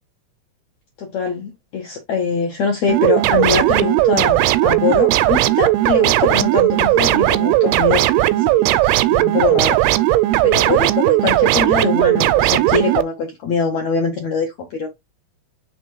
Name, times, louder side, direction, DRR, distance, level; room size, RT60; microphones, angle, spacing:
voice 1, 1.0-9.9 10.4-14.9, left 5 dB, 70° left, 1.6 m, -23 dB
sound 1, 2.9-13.0, right 15 dB, 90° right, 2.5 m, -16 dB
6.1 x 3.4 x 4.6 m
omnidirectional pair, 4.5 m